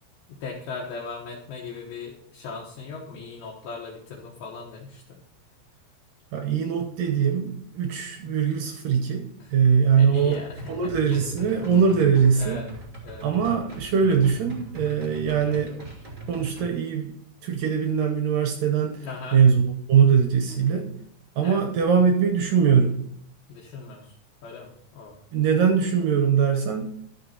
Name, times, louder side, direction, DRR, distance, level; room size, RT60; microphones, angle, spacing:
voice 1, 0.3-5.2 8.2-8.4 9.4-9.5 10.0-11.7 12.4-12.7 13.0-13.3 15.3-15.6 19.0-19.4 20.5-20.6 21.4-21.6 23.5-24.2 24.4-25.2, left 4 dB, 70° left, -2 dB, 2.8 m, -39 dB
voice 2, 6.3-9.2 9.5-10.4 10.7-12.6 13.2-15.8 16.3-17.2 17.4-19.0 19.3-20.9 21.4-23.0 25.3-26.9, right 7 dB, 75° right, 4 dB, 2.0 m, -21 dB
sound 1, 10.1-16.7, right 1 dB, 20° right, 1.9 m, -41 dB
12.0 x 6.2 x 4.2 m, 0.66 s
omnidirectional pair, 5.0 m